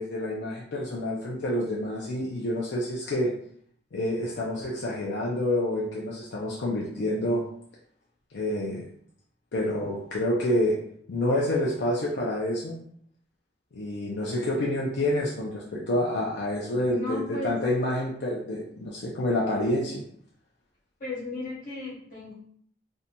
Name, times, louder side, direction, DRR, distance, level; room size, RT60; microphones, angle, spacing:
voice 1, 0.0-3.3 3.9-7.5 8.3-8.9 9.5-10.8 11.1-12.8 13.7-20.0, left 1 dB, 80° left, -4 dB, 0.5 m, -28 dB
voice 2, 16.8-17.5 21.0-22.3, left 2 dB, 50° left, -5 dB, 1.0 m, -35 dB
2.5 x 2.2 x 2.8 m, 0.62 s
head